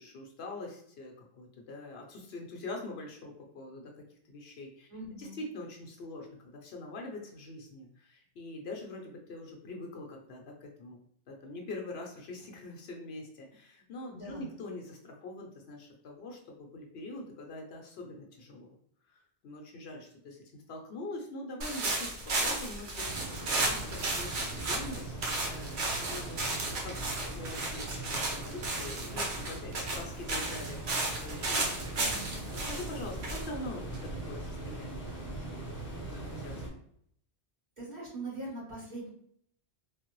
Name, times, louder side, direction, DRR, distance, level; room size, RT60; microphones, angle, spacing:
voice 1, 0.0-11.0 11.3-18.7 19.1-26.5 26.8-31.9 32.1-36.8, left 2 dB, 70° left, 1 dB, 0.9 m, -44 dB
voice 2, 4.9-5.4 14.1-14.5 31.9-32.4 37.8-39.1, right 2 dB, 40° right, -8 dB, 1.7 m, -42 dB
sound 1, 21.6-34.4, right 2 dB, 75° right, 1.0 m, -34 dB
sound 2, 23.0-36.7, right 2 dB, 10° left, 0.8 m, -41 dB
3.2 x 2.1 x 2.9 m, 0.66 s
omnidirectional pair, 1.1 m